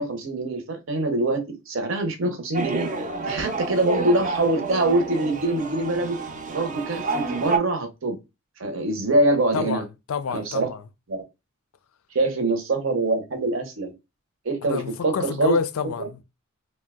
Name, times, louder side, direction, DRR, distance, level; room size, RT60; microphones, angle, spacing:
voice 1, 0.0-2.9 3.2-6.2 6.5-8.2 8.6-9.8 10.3-10.7 11.1-11.2 12.1-13.9 14.4-15.6 16.0-16.1, right 2 dB, 65° right, 0.7 m, -24 dB
sound 1, 2.5-7.6, right 3 dB, 35° right, 0.4 m, -29 dB
voice 2, 9.5-10.8 14.6-16.2, left 6 dB, 85° left, 0.4 m, -28 dB
2.8 x 2.1 x 3.5 m
head